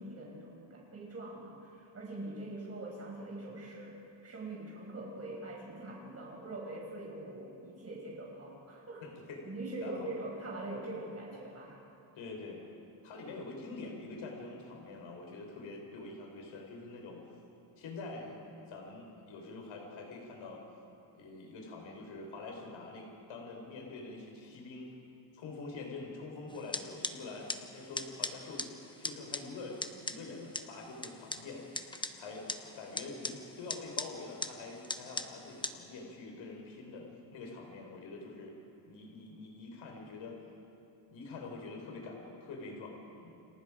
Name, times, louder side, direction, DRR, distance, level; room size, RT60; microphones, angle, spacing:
voice 1, 0.0-9.0 9.4-11.8, right 2 dB, 30° right, -2 dB, 6.3 m, -43 dB
voice 2, 9.0-9.4 9.8-10.1 12.1-12.6 13.0-17.2 17.8-20.6 21.1-24.9 25.3-31.6 32.2-32.5 32.7-37.1 37.3-38.5 38.8-40.4 41.1-43.4, left 3 dB, 75° left, 1 dB, 5.0 m, -45 dB
sound 1, 26.5-35.7, left 2 dB, 10° left, 0.9 m, -41 dB
29.5 x 26.5 x 5.1 m, 2.8 s
cardioid pair, 135°, 47 cm